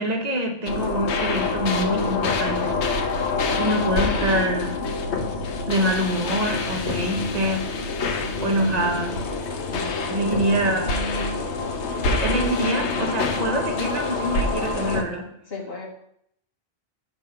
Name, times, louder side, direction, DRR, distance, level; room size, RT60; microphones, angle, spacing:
voice 1, 0.0-4.8 5.7-7.7 8.4-9.2 10.1-11.1 11.9-15.3, right 1 dB, 40° right, 2 dB, 1.0 m, -26 dB
sound 1, 0.7-15.0, left 3 dB, 90° left, 1.0 m, -26 dB
voice 2, 9.7-10.3 15.5-15.9, left 4 dB, 65° left, 0 dB, 1.5 m, -36 dB
6.6 x 3.2 x 5.4 m, 0.72 s
omnidirectional pair, 1.1 m